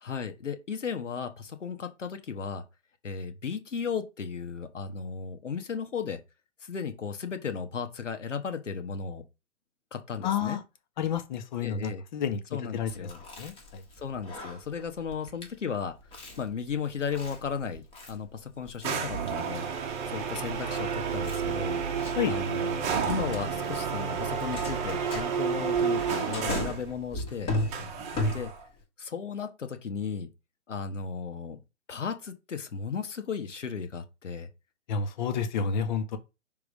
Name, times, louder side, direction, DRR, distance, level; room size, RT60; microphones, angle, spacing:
voice 1, 0.0-2.6 3.0-6.2 6.6-9.2 9.9-10.6 11.6-12.0 12.5-13.2 14.0-15.9 16.4-27.5 28.3-28.5 29.0-30.3 30.7-31.6 31.9-34.5, left 6 dB, 75° left, 1.3 m, -35 dB
voice 2, 10.2-10.6 11.0-12.4 12.7-12.9 13.4-13.8 22.1-22.4 34.9-36.2, left 7 dB, 40° left, 1.0 m, -30 dB
Chewing mastication, 12.9-28.8, left 1 dB, 15° left, 1.2 m, -38 dB
sound 1, 18.8-26.9 27.7-28.6, right 6 dB, 20° right, 1.0 m, -31 dB
5.9 x 3.6 x 5.2 m
figure-of-eight pair, 130°, 37 cm